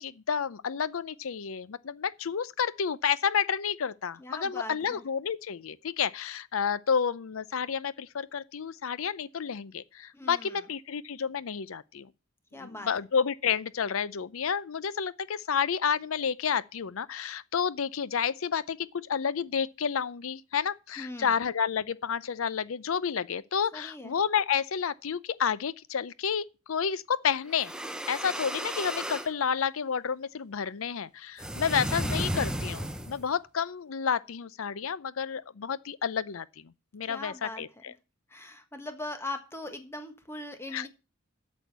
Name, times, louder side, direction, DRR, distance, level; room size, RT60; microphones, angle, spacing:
voice 1, 0.0-12.1 12.6-27.7 28.1-37.9 40.7-40.9, left 7 dB, 75° left, 0.6 m, -30 dB
voice 2, 4.2-5.0 10.1-10.7 12.5-12.9 21.0-21.4 23.7-24.1 37.1-37.8 38.3-40.9, left 2 dB, 10° left, 1.4 m, -40 dB
sound 1, 27.5-29.3 31.4-33.3, equal, 5° right, 0.7 m, -33 dB
8.5 x 6.4 x 8.0 m
head